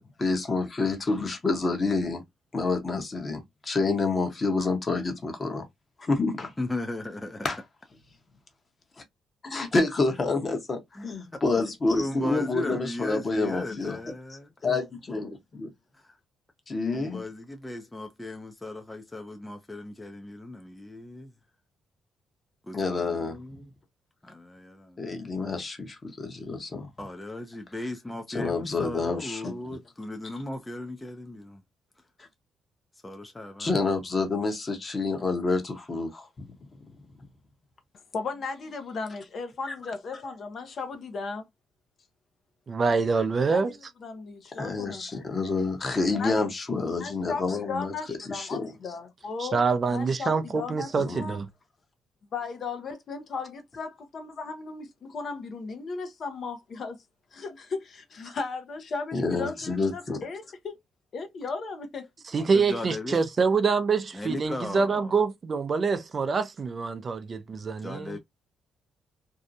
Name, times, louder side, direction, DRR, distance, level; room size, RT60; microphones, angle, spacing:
voice 1, 0.0-2.2 2.5-5.7 6.0-6.5 7.4-7.6 9.4-14.0 14.6-15.7 16.7-17.3 22.7-23.4 25.0-26.9 28.3-29.8 33.6-36.3 39.7-39.8 44.6-48.7 51.0-51.2 59.1-60.2, left 3 dB, 35° left, 0.9 m, -28 dB
voice 2, 6.6-7.5 10.9-11.4 11.9-14.5 15.9-16.1 16.9-21.3 22.6-23.7 24.2-25.1 27.0-31.6 33.0-33.7 62.4-63.3 64.1-65.1 67.8-68.2, left 1 dB, 15° left, 0.5 m, -37 dB
voice 3, 38.1-41.4 43.2-43.3 43.5-43.6 44.0-45.1 46.2-46.4 47.0-49.6 49.9-51.4 52.3-57.0 57.3-60.8 61.1-62.1, left 4 dB, 55° left, 0.6 m, -36 dB
voice 4, 42.7-43.8 49.4-51.5 62.3-68.2, right 4 dB, 40° right, 0.4 m, -26 dB
2.7 x 2.1 x 2.5 m
supercardioid pair, 70°, 0 cm